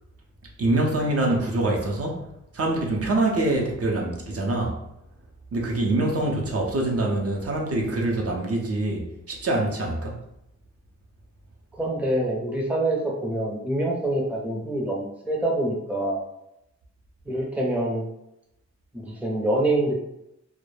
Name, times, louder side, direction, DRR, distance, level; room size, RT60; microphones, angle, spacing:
voice 1, 0.6-2.2 2.5-4.8 5.5-10.2, right 2 dB, 55° right, -1 dB, 0.5 m, -25 dB
voice 2, 11.8-16.2 17.3-18.1 18.9-19.9, right 1 dB, 5° right, -2 dB, 0.5 m, -25 dB
2.1 x 2.0 x 3.1 m, 0.82 s
wide cardioid pair, 105°, 29 cm